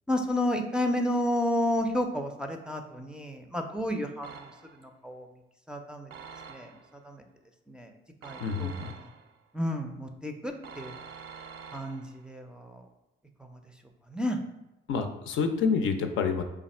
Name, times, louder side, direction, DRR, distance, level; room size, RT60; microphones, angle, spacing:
voice 1, 0.1-4.5 4.8-5.3 5.7-6.1 6.5-6.7 7.0-7.2 7.7-7.9 8.2-8.7 9.5-10.9 11.7-12.8 14.1-14.4, left 1 dB, 5° right, 3 dB, 0.4 m, -31 dB
sound 1, 4.2-4.9 6.1-7.0 8.2-9.4 10.6-12.3, right 6 dB, 90° right, 0.4 m, -46 dB
voice 2, 8.4-8.9 14.9-16.4, left 5 dB, 80° left, 6 dB, 0.5 m, -28 dB
3.4 x 2.4 x 4.2 m, 0.98 s
cardioid pair, 90°, 20 cm